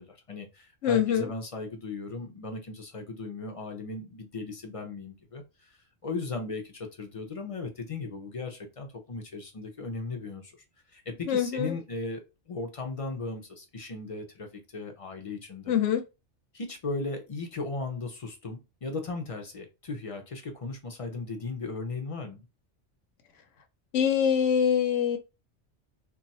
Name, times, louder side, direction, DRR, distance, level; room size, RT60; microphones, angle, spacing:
voice 1, 0.0-10.6 10.9-15.8 16.5-22.5, left 3 dB, 40° left, 0.5 m, -37 dB
voice 2, 0.8-1.3 11.3-11.7 15.7-16.0 23.9-25.2, left 8 dB, 80° left, 1.0 m, -24 dB
2.4 x 2.3 x 4.0 m
omnidirectional pair, 1.2 m